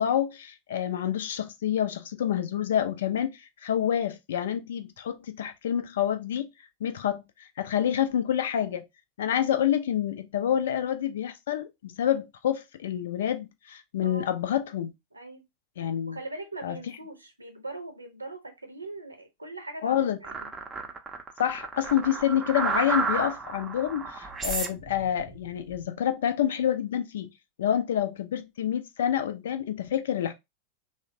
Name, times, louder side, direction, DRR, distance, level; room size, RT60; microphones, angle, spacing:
voice 1, 0.0-6.5 6.8-8.8 9.2-14.9 15.8-16.2 16.6-16.8 19.8-20.2 21.4-27.3 27.6-30.3, left 10 dB, 60° left, 0.4 m, -28 dB
voice 2, 15.1-15.4 16.1-20.5, right 2 dB, 85° right, 0.7 m, -41 dB
sound 1, 20.2-25.9, right 4 dB, 15° right, 0.5 m, -32 dB
3.1 x 2.1 x 2.6 m
figure-of-eight pair, 90°, 0 cm